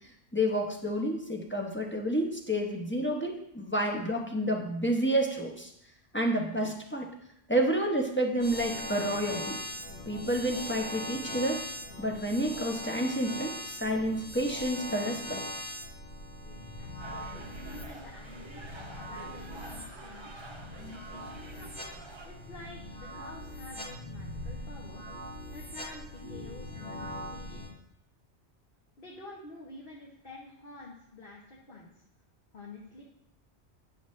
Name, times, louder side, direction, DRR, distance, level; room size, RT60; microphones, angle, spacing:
voice 1, 0.3-5.7 6.1-7.1 7.5-9.6 10.1-11.6 12.0-15.4, right 1 dB, 10° left, 1 dB, 0.8 m, -29 dB
sound 1, 8.4-27.7, left 1 dB, 85° left, 3.1 m, -41 dB
voice 2, 16.4-18.7 19.0-20.3 20.7-21.7 22.2-25.0 25.5-27.7 29.0-31.9 32.5-33.0, left 3 dB, 55° left, -3 dB, 1.4 m, -49 dB
sound 2, 17.0-22.3, right 3 dB, 30° right, 0.8 m, -49 dB
9.8 x 6.5 x 3.2 m, 0.77 s
omnidirectional pair, 1.1 m